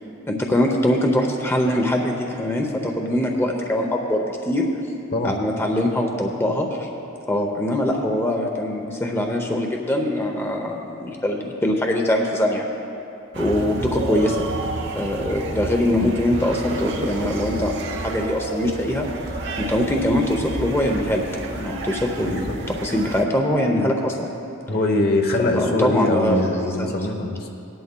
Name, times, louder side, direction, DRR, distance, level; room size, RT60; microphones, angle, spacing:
voice 1, 0.3-4.7 5.2-6.9 7.3-12.7 13.3-14.5 14.9-19.1 19.6-24.1 25.5-26.4 26.8-26.9, left 1 dB, 10° left, 1 dB, 0.7 m, -22 dB
sound 1, 13.3-23.2, right 2 dB, 60° right, 1.0 m, -30 dB
voice 2, 22.2-22.6 23.8-24.0 24.7-27.5, left 2 dB, 50° left, 3 dB, 1.0 m, -23 dB
18.5 x 11.0 x 2.2 m, 2.8 s
head